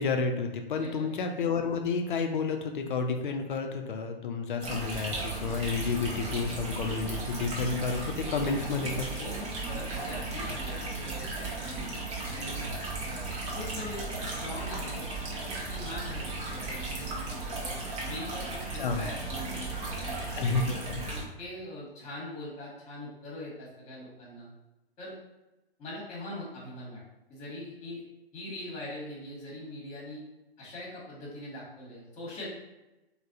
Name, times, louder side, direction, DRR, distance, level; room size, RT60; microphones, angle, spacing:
voice 1, 0.0-9.1 18.8-19.0 20.4-21.0, left 4 dB, 55° left, 5 dB, 0.5 m, -30 dB
voice 2, 0.8-1.1 9.2-11.3 11.6-11.8 12.3-12.6 13.0-13.3 13.5-20.5 21.0-24.5 25.0-25.1 25.8-27.0 27.3-28.0 28.3-30.2 30.6-32.5, left 1 dB, 20° left, -4 dB, 1.1 m, -42 dB
sound 1, 4.6-21.2, right 2 dB, 30° right, 0.7 m, -36 dB
3.3 x 2.1 x 2.6 m, 1.0 s
figure-of-eight pair, 125°, 31 cm